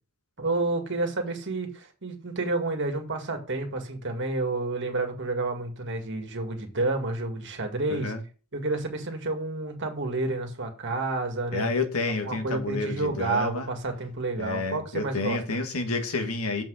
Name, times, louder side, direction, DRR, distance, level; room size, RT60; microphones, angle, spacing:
voice 1, 0.4-8.1 8.5-11.7 12.2-15.6, right 2 dB, 55° right, 2.0 m, -30 dB
voice 2, 7.9-8.2 11.5-13.7 14.4-16.6, left 3 dB, 80° left, 1.7 m, -29 dB
7.1 x 6.0 x 6.4 m
head